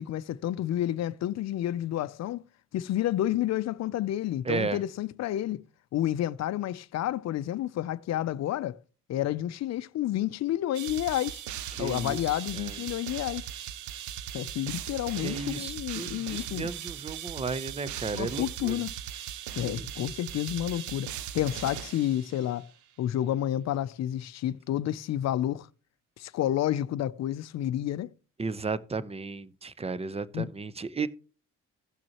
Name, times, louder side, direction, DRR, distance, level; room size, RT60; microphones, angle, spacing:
voice 1, 0.0-2.4 2.7-5.6 5.9-8.8 9.1-11.4 11.8-13.5 14.3-16.7 18.1-19.0 19.6-22.7 23.0-25.7 26.2-28.1 30.3-30.5, left 12 dB, 60° left, 0.5 m, -30 dB
voice 2, 4.4-4.8 11.8-12.7 15.2-18.8 19.6-19.9 28.4-31.1, right 4 dB, 20° right, 0.7 m, -34 dB
sound 1, 10.7-22.6, right 10 dB, 70° right, 0.7 m, -39 dB
16.5 x 6.1 x 3.0 m
supercardioid pair, 70°, 31 cm